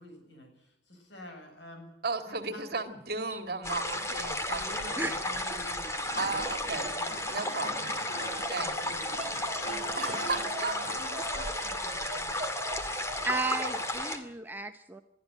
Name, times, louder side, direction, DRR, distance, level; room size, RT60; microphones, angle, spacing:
voice 1, 0.0-1.9 2.2-2.7 4.5-12.3, left 1 dB, 70° left, 4 dB, 7.7 m, -48 dB
voice 2, 2.0-5.4 6.2-6.9 7.3-7.8 8.5-8.7 10.0-10.7, right 3 dB, 55° right, 8 dB, 2.4 m, -35 dB
sound 1, 3.6-14.2, left 1 dB, 15° left, 2.1 m, -33 dB
sound 2, 6.0-11.0, equal, 45° left, 5.4 m, -43 dB
sound 3, 8.9-13.9, right 2 dB, 30° right, 5.1 m, -42 dB
voice 3, 13.2-15.0, right 3 dB, 10° right, 7 dB, 0.8 m, -33 dB
22.5 x 13.5 x 9.1 m, 0.82 s
head